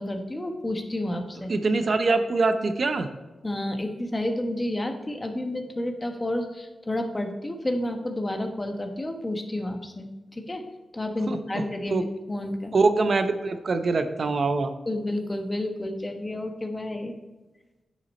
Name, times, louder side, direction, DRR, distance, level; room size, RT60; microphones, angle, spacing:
voice 1, 0.0-1.5 3.4-10.7 10.9-12.7 14.9-17.1, left 1 dB, 20° left, 5 dB, 1.1 m, -30 dB
voice 2, 1.5-3.1 11.3-11.6 11.9-12.0 12.7-14.7, right 3 dB, 55° right, 8 dB, 0.7 m, -24 dB
9.8 x 6.1 x 4.2 m, 1.1 s
cardioid pair, 80°, 0 cm